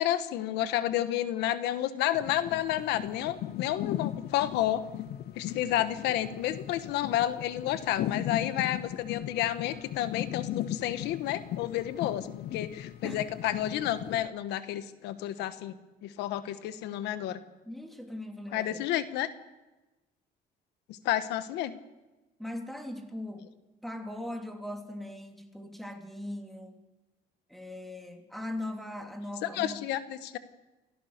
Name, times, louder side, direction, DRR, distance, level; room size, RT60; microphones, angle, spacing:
voice 1, 0.0-4.8 5.3-12.3 12.5-15.7 16.0-17.4 18.5-19.3 20.9-21.7 29.4-30.4, left 12 dB, 90° left, 12 dB, 1.2 m, -30 dB
sound 1, 2.1-14.3, left 12 dB, 70° left, 0.8 m, -37 dB
voice 2, 17.6-18.8 22.4-23.5 23.8-26.8 27.5-29.8, left 1 dB, ahead, 3 dB, 3.1 m, -39 dB
26.0 x 16.5 x 6.6 m, 1.1 s
cardioid pair, 110°, 17 cm